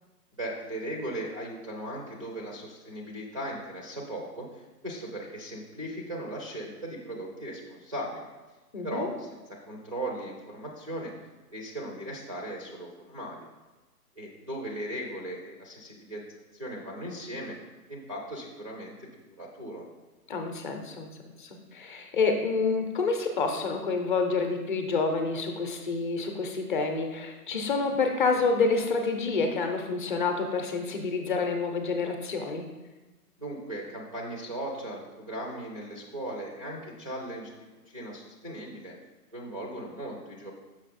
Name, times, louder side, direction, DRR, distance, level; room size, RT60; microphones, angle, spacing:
voice 1, 0.3-8.3 8.8-11.1 11.5-13.5 14.2-16.2 16.5-17.6 17.9-19.1 19.4-19.8 33.4-37.6 37.9-38.9 39.3-40.5, right 1 dB, 25° right, -1 dB, 0.4 m, -38 dB
voice 2, 8.7-9.1 20.3-21.1 21.4-32.7, left 4 dB, 30° left, 4 dB, 0.7 m, -28 dB
6.3 x 5.7 x 4.1 m, 1.2 s
hypercardioid pair, 150°, 48 cm